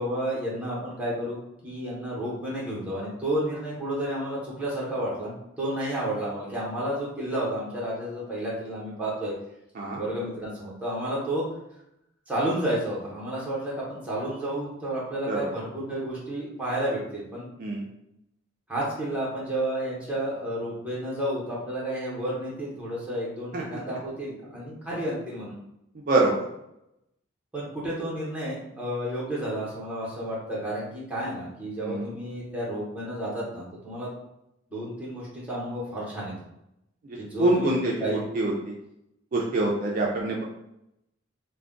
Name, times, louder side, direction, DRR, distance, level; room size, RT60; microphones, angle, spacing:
voice 1, 0.0-1.4 1.6-9.3 9.9-11.4 12.3-17.5 18.7-25.6 27.5-34.1 34.7-36.3 37.2-37.7 38.0-38.2, right 1 dB, 5° right, -7 dB, 0.9 m, -31 dB
voice 2, 26.1-26.5 31.8-32.1 37.0-38.8 39.3-40.4, right 2 dB, 45° right, -2 dB, 0.4 m, -25 dB
2.3 x 2.2 x 3.6 m, 0.83 s
head